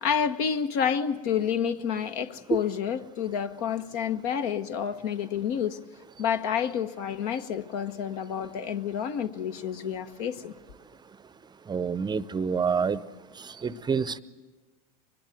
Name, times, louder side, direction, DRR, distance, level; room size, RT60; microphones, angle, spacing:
voice 1, 0.0-5.8 6.2-10.5, left 8 dB, 70° left, 1.2 m, -29 dB
voice 2, 11.7-13.0 13.6-14.2, right 6 dB, 20° right, 0.7 m, -27 dB
24.0 x 20.5 x 7.7 m
hypercardioid pair, 95°, 20 cm